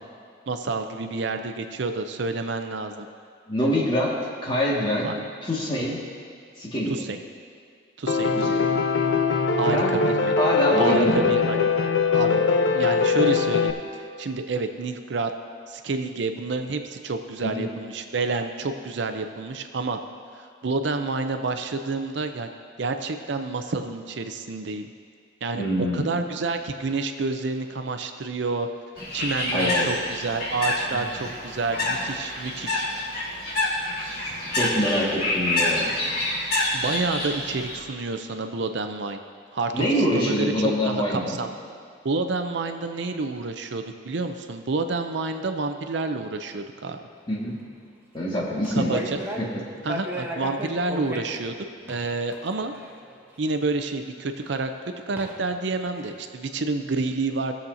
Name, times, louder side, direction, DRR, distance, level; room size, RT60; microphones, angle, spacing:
voice 1, 0.5-3.1 5.0-5.2 6.9-7.2 8.0-8.6 9.6-10.3 10.8-12.4 12.7-15.3 15.7-20.0 20.3-22.5 22.8-24.9 25.4-28.7 29.1-32.8 36.7-39.2 39.5-39.9 40.1-41.6 42.0-47.0 48.7-49.2 49.8-51.6 51.9-52.7 53.4-54.7 55.1-57.5, right 3 dB, 65° right, 7 dB, 0.5 m, -29 dB
voice 2, 3.5-4.1 4.4-5.1 5.4-6.0 6.6-6.9 8.3-8.7 9.6-10.1 10.4-11.6 17.4-17.6 25.6-26.2 29.5-29.9 30.9-31.1 34.5-35.9 39.7-41.4 47.3-47.6 48.1-49.0 49.4-49.5, equal, 25° left, -5 dB, 1.8 m, -25 dB
Piano, 8.1-13.7, left 5 dB, 75° left, 0.6 m, -22 dB
Bird, 29.0-37.8, left 2 dB, 50° left, 2.8 m, -27 dB
sound 1, 48.6-49.6 49.9-53.5 54.6-54.7 55.2-55.5 55.8-56.2, equal, 10° right, 0.9 m, -36 dB
18.5 x 7.2 x 2.7 m, 2.3 s
head